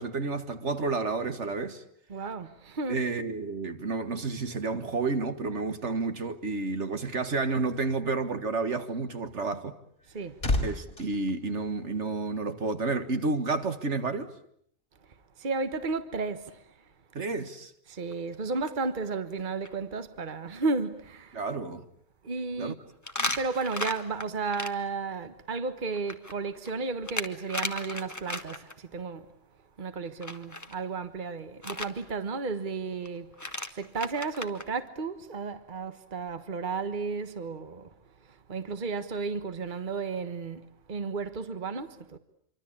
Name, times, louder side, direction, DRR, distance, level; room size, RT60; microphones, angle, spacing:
voice 1, 0.0-1.8 2.9-9.7 10.6-14.3 17.1-17.7 21.3-21.9 22.6-22.8 23.2-23.4, right 3 dB, 65° right, 1.9 m, -30 dB
voice 2, 2.1-3.0 10.1-10.4 15.4-16.6 17.9-21.4 22.2-22.7 23.3-29.2 29.8-33.3 33.7-37.9 38.5-42.2, right 4 dB, 40° right, 1.4 m, -33 dB
sound 1, 9.8-12.4 12.6-12.9, left 2 dB, 50° left, 4.7 m, -33 dB
sound 2, 18.1-18.3 18.7-18.8 19.3-19.4 19.6-19.7 23.0-24.7 25.9-28.7 30.2-30.7 31.6-31.9 33.1-33.2 33.3-34.7, left 1 dB, 15° left, 1.7 m, -35 dB
26.5 x 24.5 x 8.7 m
omnidirectional pair, 1.3 m